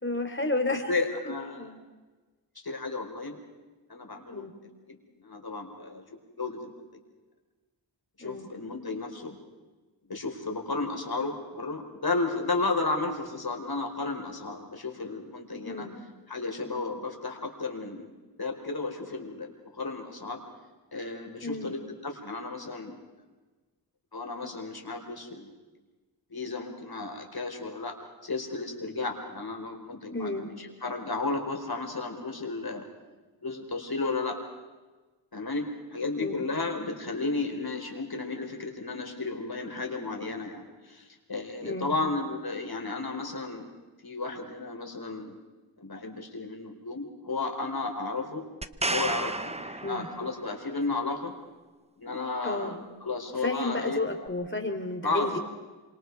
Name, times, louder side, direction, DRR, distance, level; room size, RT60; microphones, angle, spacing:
voice 1, 0.0-0.9 1.5-1.8 4.3-4.5 8.2-8.5 15.7-15.9 21.4-21.7 30.1-30.5 36.2-36.4 41.6-41.9 49.8-50.1 52.4-52.8 53.4-55.4, left 2 dB, 25° left, 5 dB, 3.7 m, -31 dB
voice 2, 0.9-1.7 2.6-3.4 3.9-4.5 4.9-6.0 6.4-6.7 8.2-9.4 10.1-15.9 16.3-20.4 20.9-22.9 24.1-25.5 26.3-32.8 33.4-34.4 35.3-35.6 35.9-43.6 44.0-45.4 45.8-48.4 48.9-51.3 52.0-54.0 55.0-55.4, left 3 dB, 50° left, 3 dB, 4.7 m, -33 dB
sound 1, 48.6-50.6 54.3-54.4, right 2 dB, 15° right, 1.0 m, -32 dB
27.0 x 26.0 x 4.8 m, 1.3 s
cardioid pair, 50°, 46 cm